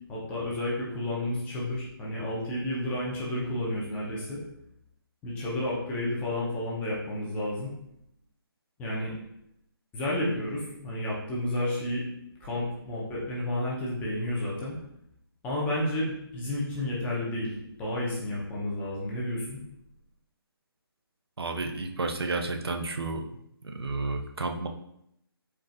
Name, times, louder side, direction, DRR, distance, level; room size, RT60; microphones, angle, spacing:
voice 1, 0.1-4.4 5.2-7.7 8.8-9.1 9.9-12.0 12.4-14.8 15.4-19.6, left 1 dB, 10° left, -5 dB, 0.8 m, -31 dB
voice 2, 21.4-23.2 23.7-24.7, right 3 dB, 75° right, 4 dB, 0.6 m, -31 dB
4.4 x 3.1 x 2.6 m, 0.75 s
figure-of-eight pair, 150°, 13 cm